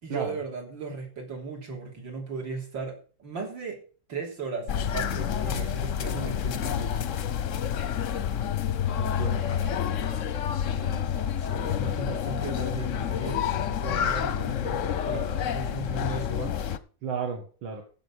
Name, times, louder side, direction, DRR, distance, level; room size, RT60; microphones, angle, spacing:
voice 1, 0.0-3.8 4.1-7.2 10.8-11.1 11.4-16.5, right 4 dB, 70° right, 1 dB, 4.0 m, -37 dB
sound 1, 4.7-16.8, left 9 dB, 60° left, 0.8 m, -29 dB
voice 2, 9.0-9.8 17.0-17.8, right 5 dB, 90° right, 2 dB, 2.4 m, -34 dB
15.0 x 6.3 x 6.2 m, 0.40 s
omnidirectional pair, 2.1 m